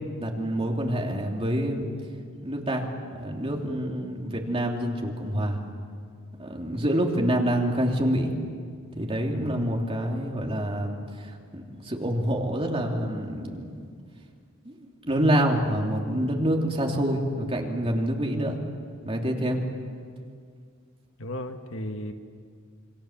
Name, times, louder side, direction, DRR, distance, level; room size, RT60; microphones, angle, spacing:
voice 1, 0.2-1.9 2.4-5.6 6.4-8.3 8.9-13.8 14.6-18.6 19.0-19.6, equal, 30° right, 0 dB, 3.1 m, -27 dB
voice 2, 21.2-22.1, left 1 dB, 70° left, 6 dB, 1.7 m, -35 dB
28.0 x 24.0 x 7.4 m, 2.1 s
head